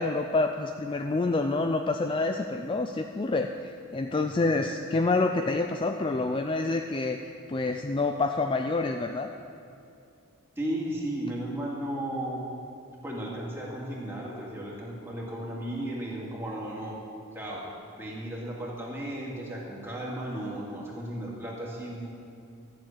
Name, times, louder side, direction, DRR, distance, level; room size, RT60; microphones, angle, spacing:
voice 1, 0.0-7.2 7.5-9.3, left 3 dB, 25° left, 5 dB, 0.3 m, -27 dB
voice 2, 10.6-12.5 13.0-16.9 17.3-17.7 17.9-22.1, right 1 dB, 10° right, -5 dB, 2.3 m, -35 dB
12.5 x 6.9 x 8.7 m, 2.6 s
head